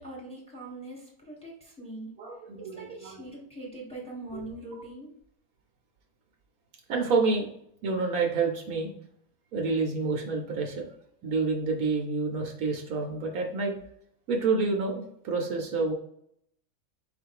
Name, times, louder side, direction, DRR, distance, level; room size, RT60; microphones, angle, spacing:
voice 1, 0.0-2.1 2.6-5.1, right 2 dB, 5° left, -3 dB, 1.2 m, -42 dB
voice 2, 2.2-3.2 4.3-4.4 6.9-7.5 7.8-8.9 9.5-10.9 11.2-13.7 14.3-15.9, right 4 dB, 70° right, 1 dB, 1.2 m, -28 dB
4.4 x 2.5 x 4.6 m, 0.70 s
omnidirectional pair, 1.6 m